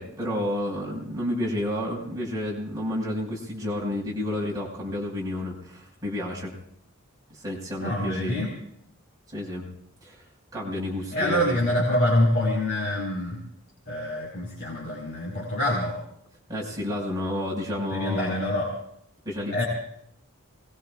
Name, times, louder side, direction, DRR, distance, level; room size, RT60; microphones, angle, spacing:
voice 1, 0.0-6.5 7.3-8.3 9.3-9.7 10.0-10.2 10.5-11.6 16.5-18.4 19.2-19.6, left 1 dB, 15° right, -5 dB, 5.5 m, -30 dB
voice 2, 7.8-8.5 11.1-13.4 13.9-16.0 17.9-18.7 19.5-19.6, left 1 dB, 40° left, -4 dB, 4.6 m, -25 dB
27.5 x 21.0 x 2.5 m, 0.72 s
head